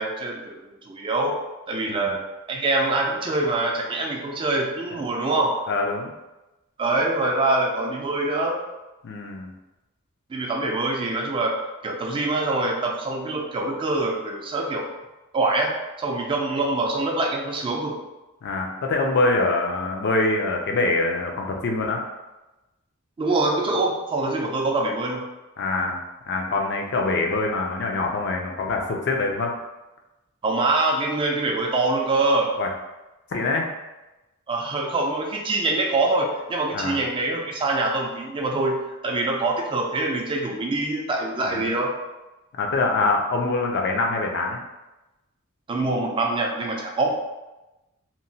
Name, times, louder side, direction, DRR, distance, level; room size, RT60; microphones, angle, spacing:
voice 1, 0.0-1.3 1.7-2.2 2.5-5.5 6.8-8.6 10.3-11.6 11.8-14.9 15.3-18.0 23.2-25.3 30.4-32.5 34.5-41.9 45.7-47.2, right 2 dB, 25° right, 0 dB, 0.3 m, -24 dB
voice 2, 5.7-6.1 9.0-9.5 18.4-22.0 25.6-26.0 26.3-29.5 32.6-32.7 33.3-33.7 36.7-37.0 41.5-41.7 42.6-44.6, left 3 dB, 50° left, 1 dB, 0.4 m, -24 dB
2.9 x 2.1 x 2.7 m, 1.0 s
head